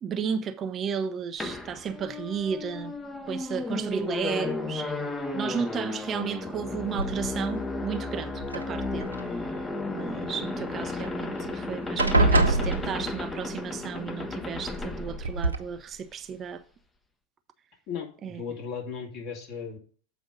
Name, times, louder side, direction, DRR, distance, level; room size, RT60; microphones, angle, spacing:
voice 1, 0.0-2.9 3.3-16.6 18.2-18.4, right 7 dB, 25° right, 0.5 m, -34 dB
sound 1, 1.4-15.9, left 2 dB, 10° left, 0.7 m, -34 dB
sound 2, 7.0-7.5 8.4-9.2 11.0-11.1 11.4-11.6 12.0-13.4 14.6-14.7 15.2-15.6, right 2 dB, 80° right, 0.9 m, -25 dB
voice 2, 17.9-19.8, left 6 dB, 45° left, 2.5 m, -36 dB
7.8 x 5.0 x 5.4 m
figure-of-eight pair, 90°, 0 cm